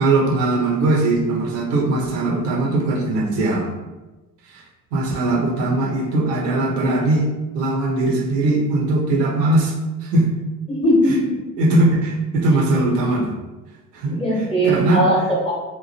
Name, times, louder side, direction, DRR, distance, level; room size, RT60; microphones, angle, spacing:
voice 1, 0.0-3.7 4.5-4.6 4.9-7.3 7.5-9.7 10.0-10.3 11.6-13.4 13.9-14.2 14.7-15.0, right 2 dB, 75° right, 0 dB, 0.7 m, -20 dB
voice 2, 10.7-11.3 14.1-15.5, right 1 dB, 10° left, -5 dB, 1.0 m, -19 dB
2.9 x 2.1 x 2.6 m, 1.1 s
figure-of-eight pair, 60°, 49 cm